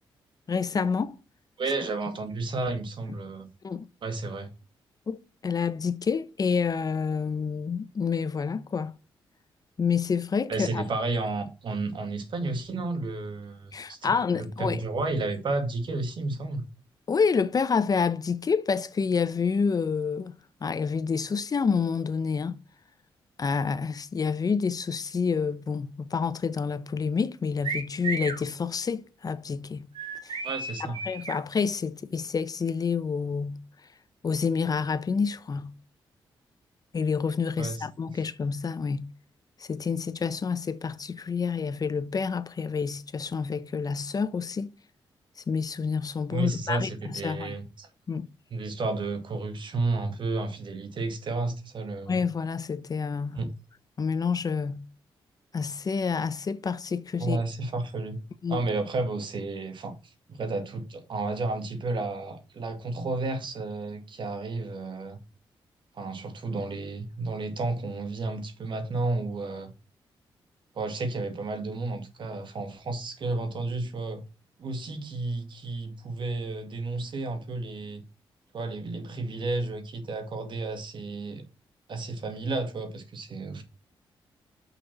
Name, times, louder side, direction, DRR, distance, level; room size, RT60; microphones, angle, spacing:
voice 1, 0.5-1.1 3.6-3.9 5.1-5.2 5.4-8.9 9.8-10.8 13.7-14.8 17.1-20.3 20.6-22.5 23.4-29.9 30.2-30.4 31.1-33.6 34.2-35.7 36.9-39.1 39.6-44.7 45.5-47.6 48.1-48.3 52.1-53.4 54.0-54.8 55.5-57.4 58.4-58.6, left 5 dB, 45° left, 0.8 m, -28 dB
voice 2, 1.6-3.5 4.0-4.5 10.5-16.6 30.4-31.0 37.6-38.3 46.3-47.9 48.5-52.2 53.3-53.5 57.2-58.2 58.5-65.2 65.9-69.7 70.8-74.2 74.6-78.0 78.5-81.4 81.9-83.6, right 3 dB, 60° right, 2.1 m, -32 dB
sound 1, 27.6-28.4 29.9-31.4, right 4 dB, 85° right, 3.0 m, -33 dB
6.1 x 5.2 x 6.0 m
cardioid pair, 75°, 9 cm